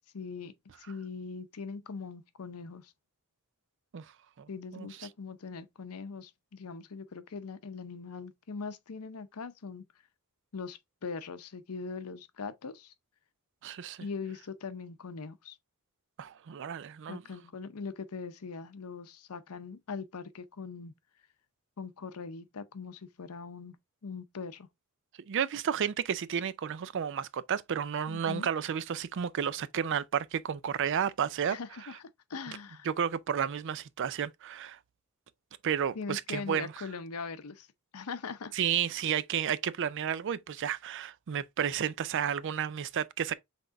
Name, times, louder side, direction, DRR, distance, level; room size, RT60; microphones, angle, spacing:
voice 1, 0.1-2.9 4.5-9.8 10.5-12.9 14.0-15.6 17.1-20.9 21.8-23.8 24.0-24.7 28.1-28.5 31.5-32.9 35.9-37.7 37.9-38.5, left 5 dB, 80° left, 0.6 m, -41 dB
voice 2, 4.7-5.1 13.6-14.0 16.2-17.2 25.3-31.6 32.5-32.6 32.8-34.8 35.6-36.9 38.5-43.3, right 8 dB, 55° right, 0.4 m, -32 dB
5.8 x 3.7 x 2.5 m
head